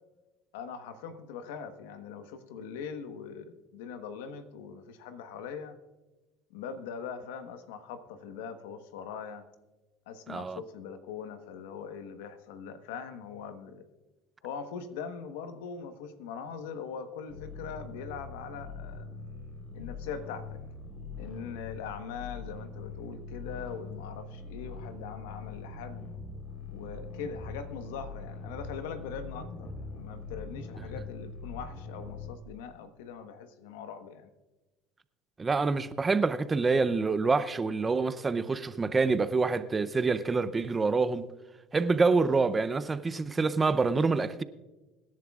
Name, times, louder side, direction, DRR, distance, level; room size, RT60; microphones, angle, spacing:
voice 1, 0.5-5.8 6.5-9.4 10.1-13.9 14.4-19.1 19.7-20.6 21.2-26.1 26.7-34.3, left 6 dB, 90° left, 1.2 m, -41 dB
voice 2, 10.3-10.6 35.4-41.3 41.7-44.4, right 4 dB, 20° right, 0.6 m, -26 dB
sound 1, 17.3-32.4, left 4 dB, 45° left, 3.9 m, -42 dB
24.5 x 10.5 x 2.4 m
supercardioid pair, 105°, 0 cm